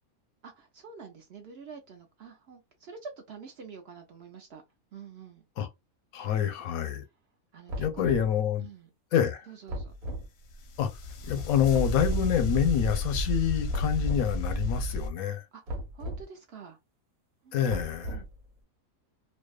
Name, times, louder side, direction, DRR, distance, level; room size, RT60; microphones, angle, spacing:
voice 1, 0.4-4.6 4.9-5.4 7.5-8.2 8.6-8.9 9.5-9.9 15.5-16.8 17.4-17.6 17.8-18.3, right 5 dB, 60° right, 0.7 m, -47 dB
voice 2, 6.1-7.0 7.8-8.7 9.1-9.5 10.8-10.9 11.2-15.4 17.5-18.2, left 9 dB, 90° left, 1.1 m, -27 dB
sound 1, 7.7-8.3 9.7-10.3 11.7-12.3 13.7-14.3 15.7-16.2 17.7-18.4, equal, 85° right, 1.3 m, -36 dB
sound 2, 10.5-15.1, left 1 dB, 65° left, 0.7 m, -31 dB
2.6 x 2.2 x 2.2 m
omnidirectional pair, 1.5 m